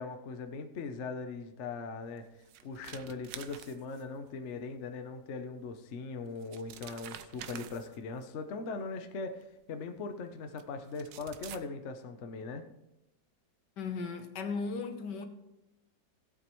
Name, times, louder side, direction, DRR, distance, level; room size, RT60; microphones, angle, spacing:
voice 1, 0.0-12.6, left 4 dB, 50° left, 1.0 m, -40 dB
sound 1, 2.2-4.3 5.7-5.8 6.3-8.2 9.4-9.5 10.6-10.7 10.9-11.6, right 10 dB, 90° right, 1.4 m, -48 dB
voice 2, 13.8-15.3, left 4 dB, 75° left, 1.7 m, -36 dB
17.0 x 8.3 x 3.1 m
omnidirectional pair, 1.9 m